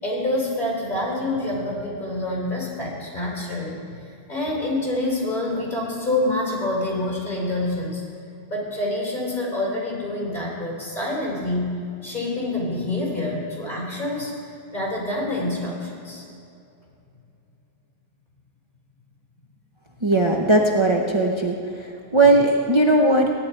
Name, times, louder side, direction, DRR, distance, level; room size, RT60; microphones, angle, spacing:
voice 1, 0.0-8.0 8.5-11.7 12.0-14.3 14.7-16.2, left 1 dB, 50° left, -4 dB, 4.4 m, -27 dB
voice 2, 20.0-23.3, right 2 dB, 30° right, 0 dB, 0.8 m, -18 dB
17.0 x 10.5 x 4.6 m, 2.6 s
omnidirectional pair, 1.1 m